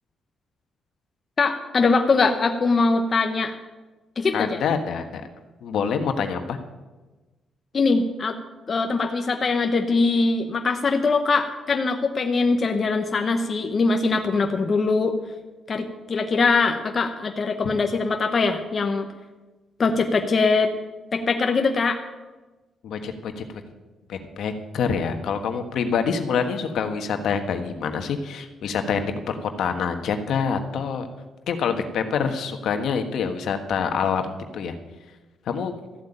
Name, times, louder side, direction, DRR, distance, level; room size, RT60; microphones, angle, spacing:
voice 1, 1.4-3.5 4.2-4.6 7.7-8.4 8.7-15.1 15.7-19.1 19.8-20.7 21.1-22.0, left 4 dB, 30° left, 5 dB, 0.9 m, -22 dB
voice 2, 4.3-5.2 5.6-6.6 22.8-23.4 24.1-31.1 31.5-34.7 35.5-35.7, left 6 dB, 65° left, 6 dB, 1.5 m, -26 dB
14.0 x 8.1 x 8.9 m, 1.2 s
cardioid pair, 160°, 0 cm